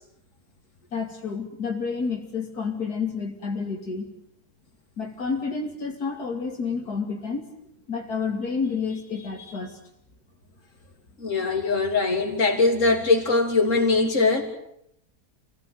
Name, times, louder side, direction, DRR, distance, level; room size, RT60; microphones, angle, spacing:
voice 1, 0.9-4.1 5.0-7.5 7.9-9.8, left 5 dB, 80° left, 1 dB, 3.2 m, -29 dB
voice 2, 11.2-14.4, left 3 dB, 55° left, 2 dB, 3.6 m, -21 dB
27.0 x 16.5 x 9.3 m, 0.75 s
omnidirectional pair, 1.6 m